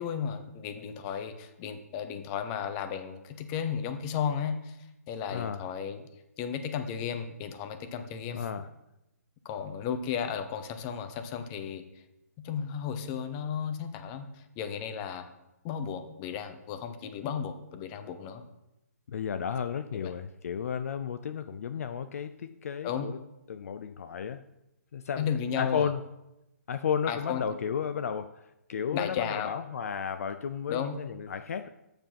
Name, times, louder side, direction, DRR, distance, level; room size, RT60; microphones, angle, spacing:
voice 1, 0.0-4.8 5.1-6.0 6.4-8.4 9.4-11.8 12.4-15.2 15.6-18.4 19.9-20.1 22.8-23.1 25.2-25.9 27.1-27.4 28.9-29.5 30.7-31.0, left 7 dB, 25° left, 8 dB, 0.8 m, -34 dB
voice 2, 5.3-5.6 8.3-8.7 19.1-23.2 23.5-24.4 24.9-25.3 25.6-26.0 26.7-28.3 28.7-31.7, left 7 dB, 60° left, 11 dB, 0.4 m, -33 dB
7.9 x 6.8 x 5.7 m, 0.92 s
hypercardioid pair, 145°, 9 cm